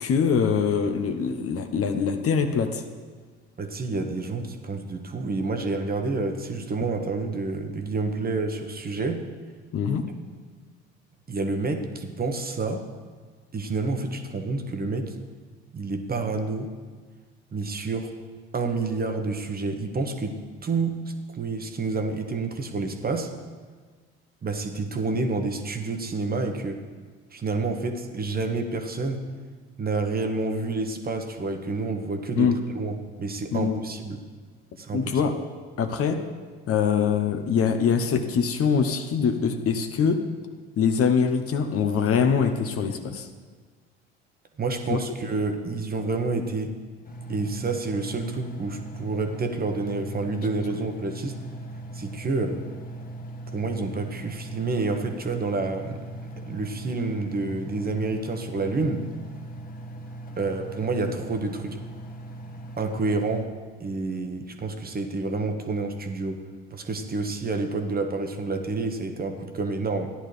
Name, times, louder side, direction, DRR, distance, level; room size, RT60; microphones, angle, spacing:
voice 1, 0.0-2.8 9.7-10.1 32.4-32.6 33.5-33.8 34.9-35.3 35.8-36.2 36.7-40.2 40.8-43.3 44.9-45.0, left 6 dB, 45° left, 7 dB, 0.9 m, -23 dB
voice 2, 3.6-9.2 11.3-12.8 13.5-15.1 15.7-16.7 17.5-18.1 18.5-21.0 21.3-23.3 24.4-26.8 27.3-29.2 29.8-34.2 34.8-35.2 44.6-46.7 47.3-51.4 51.9-52.6 53.5-59.1 60.4-61.8 62.8-63.5 63.8-66.4 66.7-70.1, right 3 dB, 30° right, 5 dB, 1.2 m, -29 dB
Engine, 47.0-63.5, right 1 dB, 25° left, 1.5 m, -39 dB
14.0 x 10.5 x 3.3 m, 1.5 s
hypercardioid pair, 60°, 32 cm